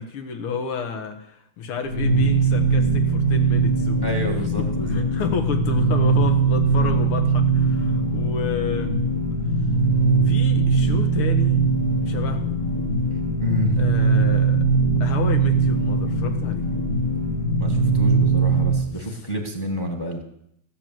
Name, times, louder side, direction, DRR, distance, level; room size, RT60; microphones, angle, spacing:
voice 1, 0.0-4.1 4.6-8.9 10.3-11.6 12.0-12.7 13.8-14.6 15.0-16.7 19.0-19.2, left 5 dB, 85° left, 6 dB, 2.3 m, -31 dB
sound 1, 1.8-18.9, right 3 dB, 40° left, 1.8 m, -20 dB
voice 2, 4.0-5.0 13.4-13.7 17.5-20.2, equal, 10° left, 2 dB, 1.3 m, -29 dB
15.5 x 6.7 x 7.7 m, 0.75 s
omnidirectional pair, 2.3 m